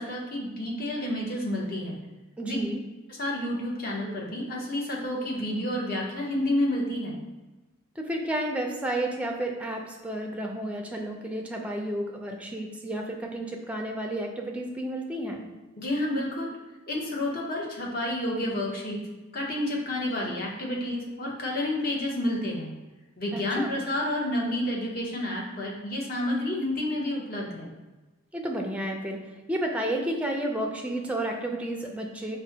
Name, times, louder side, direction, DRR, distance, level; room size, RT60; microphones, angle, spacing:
voice 1, 0.0-2.0 2.4-2.6 3.1-7.2 15.8-16.5 16.9-19.0 19.3-22.7 23.2-27.7, left 1 dB, 45° left, -3 dB, 0.9 m, -30 dB
voice 2, 2.4-2.8 8.0-15.5 23.3-23.8 28.3-29.2 29.5-32.4, right 1 dB, 5° right, 1 dB, 0.4 m, -31 dB
5.0 x 2.2 x 2.8 m, 1.2 s
head